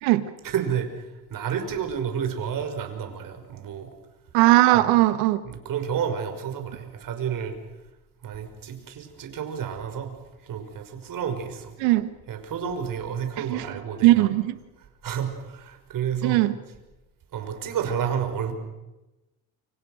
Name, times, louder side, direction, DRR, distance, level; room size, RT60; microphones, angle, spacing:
voice 1, 0.4-3.9 4.7-4.9 5.4-7.6 8.2-10.1 10.4-11.7 12.3-14.3 15.0-16.4 17.3-18.5, right 8 dB, 55° right, 7 dB, 5.8 m, -30 dB
voice 2, 4.3-5.4 11.8-12.1 13.5-13.6 14.0-14.6 16.2-16.6, right 17 dB, 90° right, 12 dB, 1.7 m, -19 dB
29.0 x 27.0 x 6.6 m, 1.0 s
supercardioid pair, 90°, 39 cm